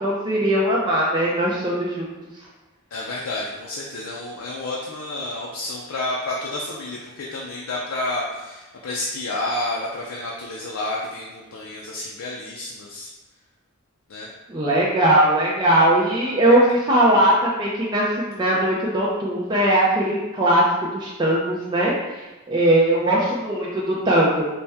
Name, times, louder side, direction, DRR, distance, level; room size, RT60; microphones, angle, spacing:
voice 1, 0.0-2.1 14.5-20.6 20.9-21.9 22.5-24.4, right 1 dB, 20° right, -6 dB, 0.5 m, -19 dB
voice 2, 2.9-13.1 14.1-14.3, left 2 dB, 75° left, -4 dB, 0.5 m, -30 dB
4.1 x 2.2 x 3.4 m, 1.1 s
head